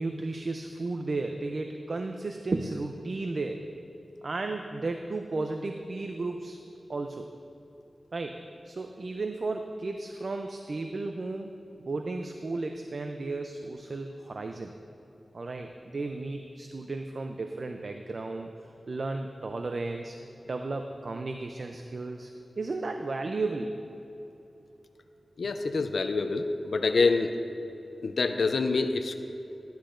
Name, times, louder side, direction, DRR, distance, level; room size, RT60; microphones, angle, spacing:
voice 1, 0.0-3.6 4.2-6.6 6.9-7.3 8.1-11.5 11.8-14.7 15.3-18.5 18.9-20.2 20.5-23.7, right 3 dB, 55° right, 5 dB, 0.4 m, -34 dB
voice 2, 25.4-27.3 28.0-29.1, left 4 dB, 75° left, 7 dB, 0.4 m, -26 dB
11.5 x 10.5 x 2.5 m, 2.9 s
wide cardioid pair, 110°, 0 cm